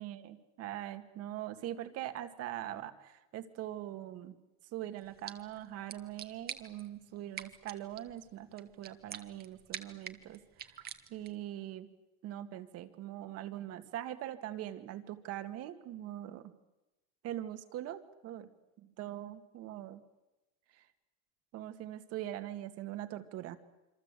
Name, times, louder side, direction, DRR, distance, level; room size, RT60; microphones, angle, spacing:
voice 1, 0.0-4.3 4.7-10.4 10.7-11.9 12.2-16.5 17.2-18.5 19.0-20.0 20.7-20.8 21.5-23.6, right 12 dB, 45° right, 9 dB, 2.0 m, -42 dB
sound 1, 5.0-11.5, right 9 dB, 30° right, 1.6 m, -48 dB
27.0 x 25.0 x 8.3 m, 1.0 s
cardioid pair, 155°, 34 cm